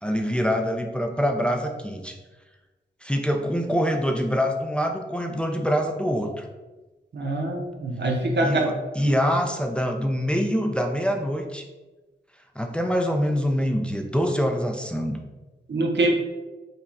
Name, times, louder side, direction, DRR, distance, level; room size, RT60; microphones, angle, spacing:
voice 1, 0.0-2.2 3.0-6.5 8.4-11.6 12.6-15.2, equal, 5° left, 3 dB, 0.6 m, -25 dB
voice 2, 7.1-8.7 9.0-9.1 15.7-16.1, right 2 dB, 70° right, 1 dB, 0.8 m, -24 dB
5.2 x 2.3 x 4.0 m, 1.2 s
cardioid pair, 50°, 19 cm